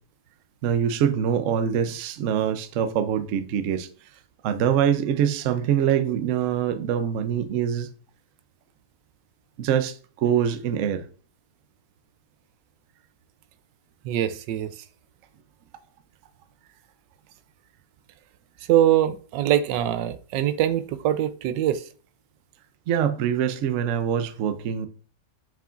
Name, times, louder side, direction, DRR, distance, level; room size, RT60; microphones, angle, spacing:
voice 1, 0.6-3.9 4.4-7.9 9.6-11.0 22.9-24.9, right 8 dB, 65° right, 0.8 m, -24 dB
voice 2, 14.0-14.8 18.7-21.9, right 11 dB, 85° right, 1.2 m, -23 dB
7.0 x 6.1 x 2.4 m
omnidirectional pair, 1.9 m